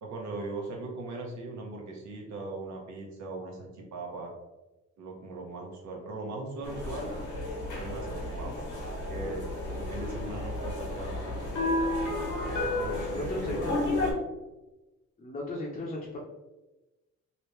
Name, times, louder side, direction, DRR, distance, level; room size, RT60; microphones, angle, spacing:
voice 1, 0.0-4.3 5.0-7.1 7.7-9.4 9.8-11.8 12.5-14.2, right 3 dB, 65° right, 0 dB, 1.1 m, -40 dB
sound 1, 6.6-14.1, left 2 dB, 85° left, 1.2 m, -32 dB
voice 2, 13.1-13.8 15.2-16.2, left 2 dB, 25° left, -4 dB, 0.7 m, -35 dB
3.1 x 2.8 x 3.1 m, 1.1 s
cardioid pair, 90°, 30 cm